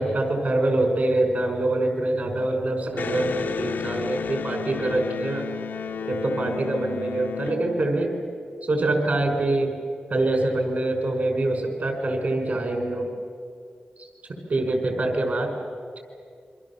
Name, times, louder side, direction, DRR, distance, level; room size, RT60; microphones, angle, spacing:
voice 1, 0.0-5.5 6.1-8.1 8.6-9.7 10.1-13.1 14.0-14.1 14.5-15.5, right 2 dB, 55° right, 3 dB, 5.5 m, -24 dB
Electric guitar, 2.9-8.4, left 6 dB, 90° left, 0.8 m, -32 dB
28.5 x 24.5 x 7.4 m, 2.3 s
wide cardioid pair, 115°, 3 cm